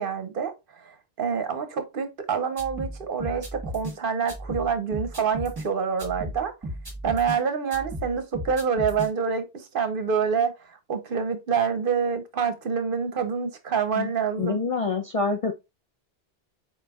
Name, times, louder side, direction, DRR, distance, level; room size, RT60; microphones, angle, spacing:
voice 1, 0.0-6.5 7.0-14.6, right 6 dB, 55° right, 0.9 m, -27 dB
sound 1, 2.6-4.0 4.3-5.7 6.0-7.4 7.7-9.1, equal, 20° right, 1.3 m, -35 dB
voice 2, 14.4-15.5, left 4 dB, 45° left, 0.5 m, -26 dB
4.6 x 4.3 x 2.3 m
omnidirectional pair, 1.1 m